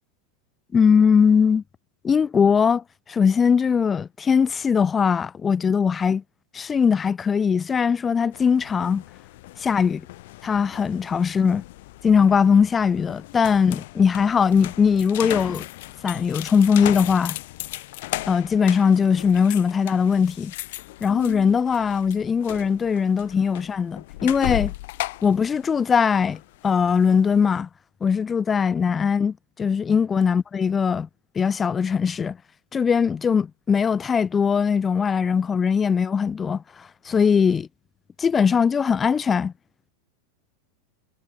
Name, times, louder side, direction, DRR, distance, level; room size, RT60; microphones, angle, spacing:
voice 1, 0.7-1.6 2.0-6.2 6.5-9.0 9.6-10.1 10.4-11.6 12.0-15.7 16.0-17.4 18.3-20.5 21.0-24.7 25.2-27.7 28.0-31.1 31.4-32.4 32.7-37.7 38.2-39.5, left 6 dB, 15° left, 0.6 m, -20 dB
sound 1, 8.3-27.5, left 19 dB, 55° left, 7.0 m, -36 dB
supercardioid pair, 175°, 0 cm